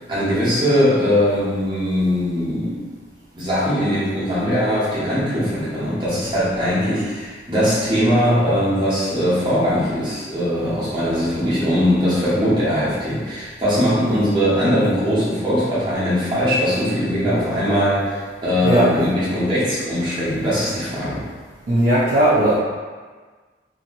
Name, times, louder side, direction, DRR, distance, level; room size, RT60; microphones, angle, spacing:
voice 1, 0.1-2.8 3.3-21.3, equal, 25° right, -10 dB, 1.0 m, -20 dB
voice 2, 21.7-22.6, right 1 dB, 50° right, -8 dB, 0.4 m, -16 dB
2.8 x 2.8 x 2.6 m, 1.4 s
head